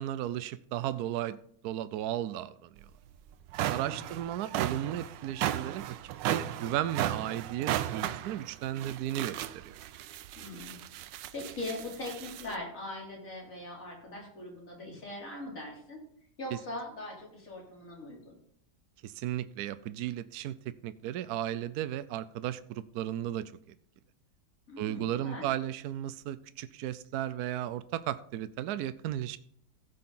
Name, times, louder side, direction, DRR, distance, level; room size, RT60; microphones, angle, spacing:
voice 1, 0.0-1.4 1.6-2.8 3.7-6.0 6.3-9.8 16.5-16.6 19.0-23.4 24.8-29.4, right 12 dB, 70° right, 14 dB, 1.0 m, -35 dB
sound 1, 2.8-2.9 3.3-12.5, right 12 dB, 85° right, 1.3 m, -35 dB
voice 2, 3.8-4.2 10.4-10.8 11.3-16.0 16.4-18.3 24.7-25.5, left 2 dB, 45° left, -2 dB, 3.7 m, -41 dB
15.5 x 6.6 x 3.8 m, 0.65 s
omnidirectional pair, 1.9 m